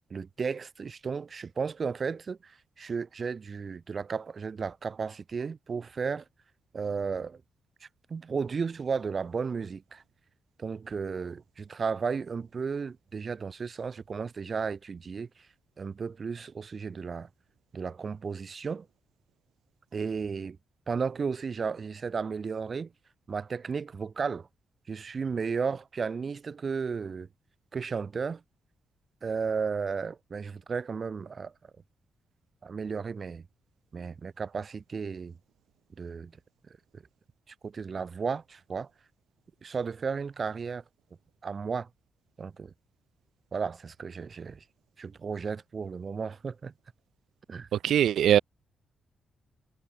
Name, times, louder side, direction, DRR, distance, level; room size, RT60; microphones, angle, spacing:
voice 1, 0.1-6.2 6.7-7.4 8.1-10.0 10.6-15.3 15.8-17.3 17.7-18.9 19.9-20.6 20.9-22.9 23.3-24.5 24.9-27.3 27.7-28.4 29.2-31.5 32.6-33.4 33.9-35.3 36.0-36.3 36.9-37.0 37.6-38.9 39.6-40.8 41.4-41.9 42.4-42.7 43.5-44.6 45.0-46.7 47.5-47.7, right 5 dB, 35° right, 0.5 m, -34 dB
voice 2, 47.8-48.4, right 10 dB, 80° right, 0.5 m, -21 dB
wide cardioid pair, 170°, 0 cm